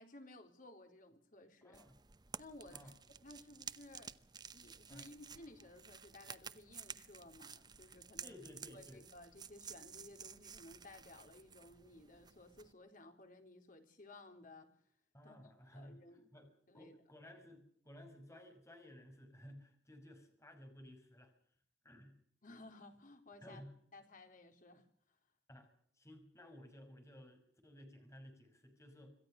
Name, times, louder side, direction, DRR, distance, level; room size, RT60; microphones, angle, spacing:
voice 1, 0.0-1.8 2.4-2.9 3.2-4.1 4.5-8.4 8.7-14.7 15.2-15.4 15.7-16.3 16.7-17.0 22.4-23.6 23.9-24.9, left 2 dB, 50° left, 5 dB, 3.9 m, -57 dB
voice 2, 1.6-2.0 2.7-2.9 4.9-5.1 8.2-9.0 15.1-16.0 16.3-16.5 16.7-21.3 21.8-22.2 23.4-23.8 25.5-25.7 25.9-29.1, left 1 dB, 15° left, 6 dB, 5.7 m, -56 dB
sound 1, 1.7-12.7, right 6 dB, 25° right, 0.8 m, -53 dB
27.0 x 15.0 x 6.6 m, 0.63 s
head